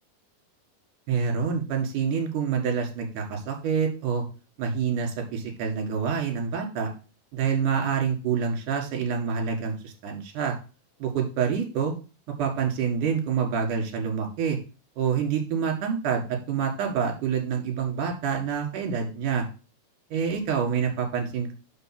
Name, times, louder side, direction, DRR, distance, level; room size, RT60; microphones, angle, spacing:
voice 1, 1.1-4.2 4.6-6.9 7.3-10.5 11.0-11.9 12.4-14.6 15.0-19.4 20.1-21.5, right 6 dB, 55° right, 2 dB, 3.0 m, -27 dB
6.2 x 5.5 x 5.9 m, 0.33 s
omnidirectional pair, 4.9 m